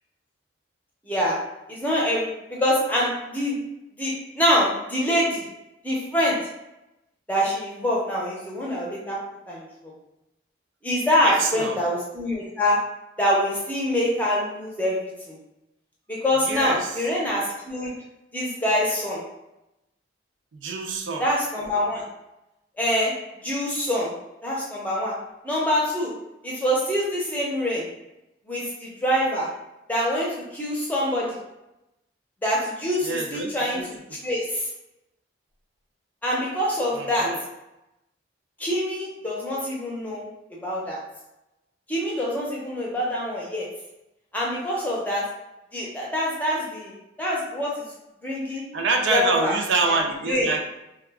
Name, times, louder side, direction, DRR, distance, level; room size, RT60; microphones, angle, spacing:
voice 1, 1.1-1.4 1.7-3.6 4.0-5.5 5.8-6.4 7.3-9.2 9.5-9.6 10.8-12.8 13.2-15.4 16.1-17.9 18.3-19.2 21.2-22.0 22.8-23.1 23.4-24.1 24.4-25.1 25.4-26.1 26.4-27.9 28.5-29.5 29.9-31.4 32.4-34.0 34.2-34.7 36.2-37.3 38.6-40.2 40.6-41.0 41.9-43.7 44.3-45.3 45.7-47.9 48.2-48.6 49.1-49.5 49.8-50.0 50.2-50.5, equal, 10° left, -5 dB, 0.6 m, -25 dB
voice 2, 11.2-11.8 16.4-17.0 20.5-21.3 33.0-33.9 36.9-37.4 48.7-50.6, right 3 dB, 75° right, 3 dB, 0.4 m, -26 dB
2.3 x 2.2 x 3.3 m, 0.93 s
head